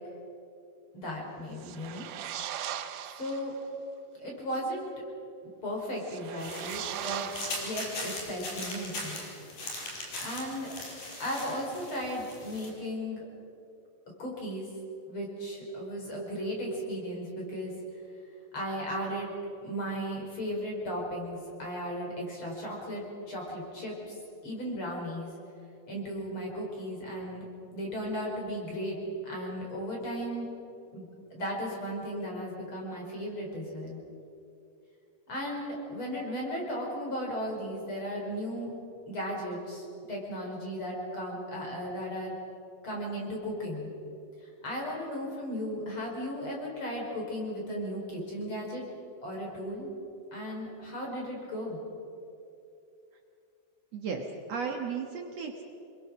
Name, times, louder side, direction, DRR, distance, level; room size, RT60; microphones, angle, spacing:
voice 1, 0.9-2.0 3.1-3.5 4.2-4.9 5.6-7.3 7.6-9.2 10.2-10.7 11.2-13.2 14.2-14.7 15.1-17.7 18.5-19.3 19.6-25.3 25.9-27.4 27.7-29.0 29.2-30.5 30.9-34.0 35.3-38.7 39.1-42.4 42.8-43.9 44.6-48.8 49.2-49.9 50.3-51.8, equal, 40° left, -2 dB, 5.6 m, -36 dB
sound 1, 1.5-3.6 6.0-8.3, right 10 dB, 75° right, 2.3 m, -39 dB
sound 2, 6.4-12.7, left 2 dB, 80° left, 5.8 m, -40 dB
voice 2, 53.9-55.6, right 5 dB, 60° right, 2 dB, 2.3 m, -35 dB
27.0 x 22.0 x 6.3 m, 2.7 s
omnidirectional pair, 3.7 m